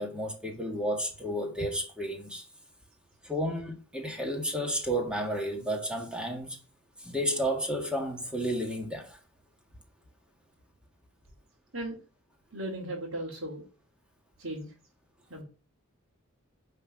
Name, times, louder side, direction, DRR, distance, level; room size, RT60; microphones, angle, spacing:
voice 1, 0.0-2.4 3.2-6.6 7.0-9.2, equal, 5° right, 1.7 m, -32 dB
voice 2, 12.5-13.6 14.4-14.7 15.3-15.4, right 1 dB, 70° right, 2.4 m, -36 dB
9.9 x 4.3 x 6.2 m
head